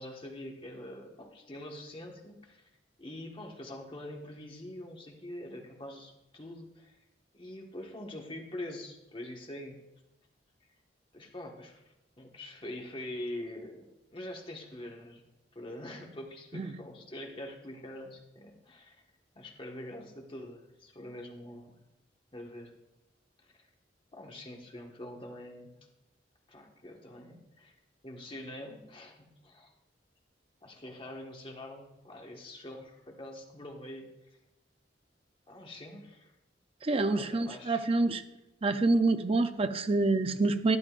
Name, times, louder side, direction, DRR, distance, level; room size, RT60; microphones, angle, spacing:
voice 1, 0.0-2.6 3.0-7.0 7.3-9.8 11.1-11.8 12.2-13.8 14.1-15.2 15.5-19.0 19.3-21.8 22.3-22.7 24.1-25.7 26.5-27.7 28.0-29.7 30.6-34.0 35.5-36.3 37.1-37.9, left 1 dB, 30° left, 1 dB, 1.5 m, -44 dB
voice 2, 36.8-38.2 38.6-40.8, right 3 dB, 30° right, 9 dB, 0.6 m, -27 dB
12.5 x 10.5 x 2.5 m, 0.94 s
head